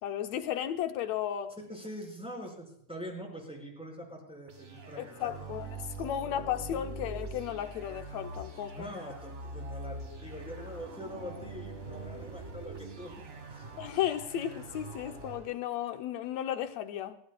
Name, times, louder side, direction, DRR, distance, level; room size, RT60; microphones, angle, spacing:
voice 1, 0.0-1.5 5.0-8.9 13.8-17.2, left 11 dB, 75° left, 1.8 m, -34 dB
voice 2, 1.7-5.5 8.7-13.2 13.5-13.7, equal, ahead, 4.6 m, -44 dB
sound 1, 4.5-15.5, right 2 dB, 45° right, 0.9 m, -43 dB
30.0 x 14.5 x 2.2 m
omnidirectional pair, 3.5 m